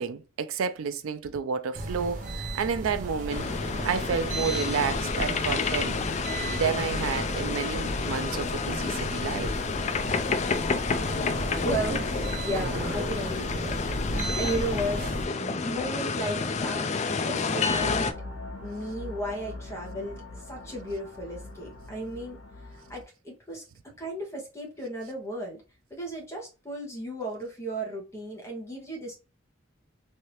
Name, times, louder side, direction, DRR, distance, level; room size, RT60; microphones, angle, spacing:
voice 1, 0.0-3.5 3.8-6.0 6.5-9.5, right 6 dB, 85° right, 0.4 m, -30 dB
sound 1, 1.7-15.3, right 1 dB, 40° right, 0.7 m, -34 dB
sound 2, 3.3-18.1, left 4 dB, 35° left, 0.3 m, -30 dB
voice 2, 11.6-18.1 18.6-22.4 22.6-23.6 24.0-25.6 25.9-29.1, right 1 dB, 15° left, 1.1 m, -35 dB
sound 3, 17.7-23.0, left 2 dB, 70° left, 1.0 m, -42 dB
3.2 x 2.8 x 2.9 m
head